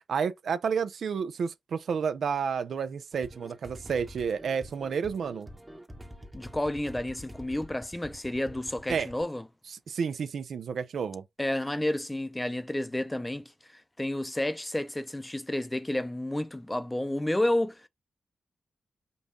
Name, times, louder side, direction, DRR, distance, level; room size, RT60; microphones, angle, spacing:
voice 1, 0.1-5.5 8.9-9.1 9.7-11.2, right 6 dB, 75° right, 0.4 m, -30 dB
sound 1, 3.1-9.2, equal, 15° right, 0.9 m, -47 dB
voice 2, 6.3-9.4 11.4-17.9, left 1 dB, 10° left, 0.5 m, -31 dB
5.4 x 2.3 x 3.8 m
cardioid pair, 75°, 0 cm